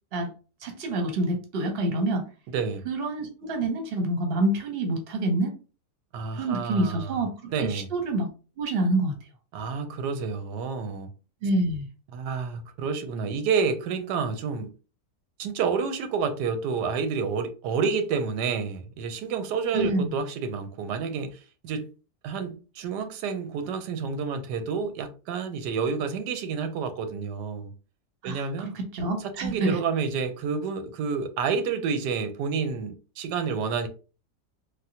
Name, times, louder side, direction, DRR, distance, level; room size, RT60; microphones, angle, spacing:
voice 1, 0.6-2.3 2.9-5.5 6.3-7.3 7.6-8.3 8.6-9.1 11.4-11.9 19.7-20.2 28.2-29.8, right 2 dB, 50° right, 0.8 m, -27 dB
voice 2, 2.5-2.9 6.1-7.2 7.5-7.9 9.5-11.1 12.1-14.7 15.4-21.9 22.2-27.7 28.2-28.8 29.4-33.9, right 5 dB, 90° right, 1.2 m, -29 dB
3.4 x 2.2 x 2.7 m
omnidirectional pair, 1.7 m